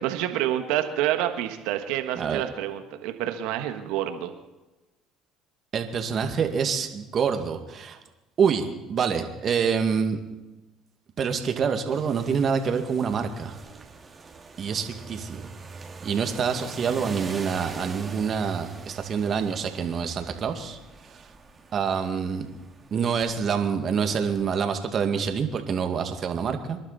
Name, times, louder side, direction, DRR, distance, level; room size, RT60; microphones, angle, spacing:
voice 1, 0.0-4.3, right 12 dB, 80° right, 7 dB, 1.6 m, -28 dB
voice 2, 5.7-8.0 8.4-10.2 11.2-13.6 14.6-15.5 16.0-20.8 21.1-21.3 21.7-22.5 22.9-26.8, right 6 dB, 45° right, 6 dB, 2.2 m, -26 dB
sound 1, 11.9-24.4, right 4 dB, 25° right, 2.4 m, -42 dB
27.0 x 11.5 x 4.2 m, 1.1 s
supercardioid pair, 80°, 0 cm